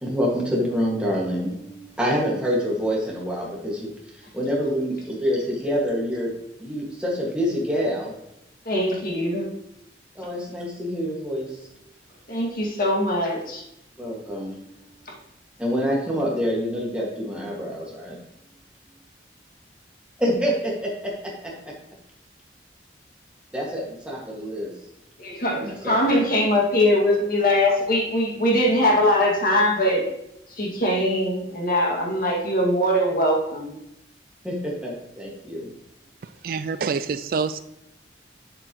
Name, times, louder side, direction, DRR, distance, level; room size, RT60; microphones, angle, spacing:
voice 1, 0.0-6.3 6.6-8.1 10.2-11.6 14.0-14.7 15.6-18.2 20.2-21.7 23.5-24.7 25.6-26.2 34.4-35.7, equal, 5° right, -3 dB, 1.8 m, -27 dB
voice 2, 8.7-9.5 12.3-13.6 25.2-30.1 30.6-33.7, left 1 dB, 50° left, -2 dB, 2.1 m, -21 dB
voice 3, 36.4-37.6, right 5 dB, 50° right, 13 dB, 0.3 m, -26 dB
7.9 x 7.8 x 3.0 m, 0.84 s
head